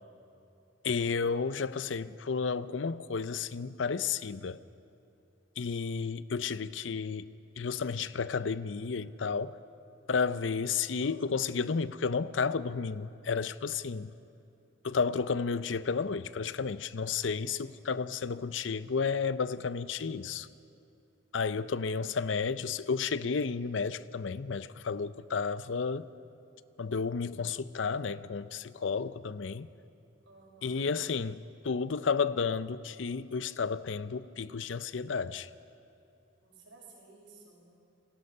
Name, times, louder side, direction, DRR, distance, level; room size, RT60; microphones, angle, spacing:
voice 1, 0.8-4.6 5.6-9.6 10.1-14.1 14.8-20.5 21.3-26.1 26.8-29.7 30.6-35.5, left 5 dB, 75° left, 0.6 m, -32 dB
voice 2, 10.3-11.0 17.4-18.1 30.2-30.9 36.4-37.6, right 3 dB, 85° right, 6.1 m, -57 dB
29.0 x 19.0 x 5.5 m
head